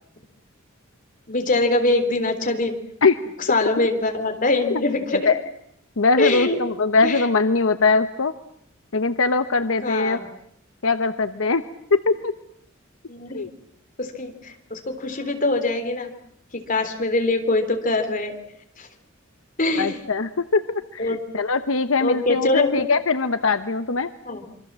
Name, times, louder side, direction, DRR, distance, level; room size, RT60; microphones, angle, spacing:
voice 1, 1.3-2.8 3.5-5.3 6.2-6.6 7.0-7.2 9.7-10.3 13.1-13.5 14.0-16.1 16.5-18.3 18.8-18.9 19.6-20.0 21.0-21.2 22.0-22.9 24.3-24.4, left 2 dB, 40° left, 5 dB, 3.7 m, -23 dB
voice 2, 6.0-8.3 8.9-10.2 10.8-11.6 11.9-12.3 13.3-13.5 19.8-24.1, left 4 dB, 75° left, 11 dB, 1.0 m, -21 dB
27.0 x 24.5 x 7.5 m, 0.70 s
head